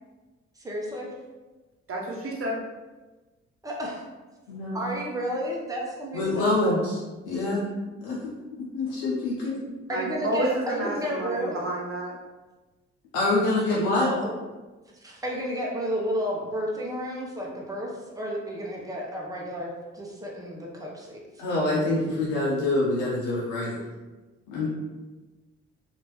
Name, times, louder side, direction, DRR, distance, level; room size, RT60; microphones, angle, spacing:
voice 1, 0.6-1.1 3.6-4.0 4.7-6.8 9.9-11.6 13.9-14.3 15.0-17.9 18.2-21.2, equal, 10° right, -3 dB, 0.9 m, -32 dB
voice 2, 1.9-2.6 9.9-12.2, right 1 dB, 45° right, -1 dB, 0.9 m, -30 dB
voice 3, 4.5-4.8 6.1-7.0 7.3-7.6 8.0-8.3 8.6-9.6 13.1-14.1 21.4-23.8 24.5-24.7, left 2 dB, 80° left, -6 dB, 0.6 m, -25 dB
3.0 x 2.5 x 3.0 m, 1.2 s
hypercardioid pair, 45°, 31 cm